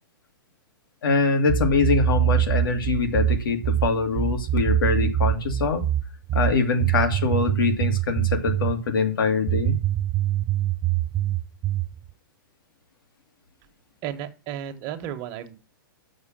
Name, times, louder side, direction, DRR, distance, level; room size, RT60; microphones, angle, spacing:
voice 1, 1.0-5.8 6.3-9.7, left 4 dB, 80° left, 5 dB, 2.1 m, -23 dB
Don Gorgon (Bass), 1.5-8.8 9.5-11.9, right 12 dB, 25° right, 0.4 m, -24 dB
voice 2, 14.0-15.6, right 10 dB, 40° right, 6 dB, 1.3 m, -33 dB
6.4 x 6.0 x 7.4 m, 0.33 s
hypercardioid pair, 135°, 11 cm